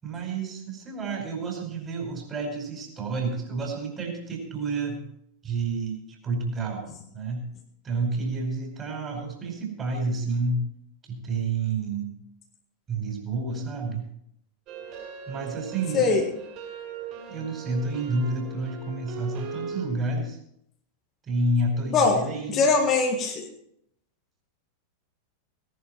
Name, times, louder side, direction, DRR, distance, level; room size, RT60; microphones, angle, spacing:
voice 1, 0.0-5.0 5.4-7.5 7.8-10.7 11.1-12.1 12.9-14.1 15.3-16.2 17.3-20.4 21.2-22.7, right 2 dB, 25° right, 2 dB, 5.0 m, -30 dB
sound 1, 14.7-19.9, right 6 dB, 40° right, 7.1 m, -39 dB
voice 2, 15.9-16.3 21.9-23.5, left 4 dB, 30° left, 3 dB, 1.8 m, -22 dB
17.5 x 11.5 x 4.5 m, 0.73 s
figure-of-eight pair, 90°, 0 cm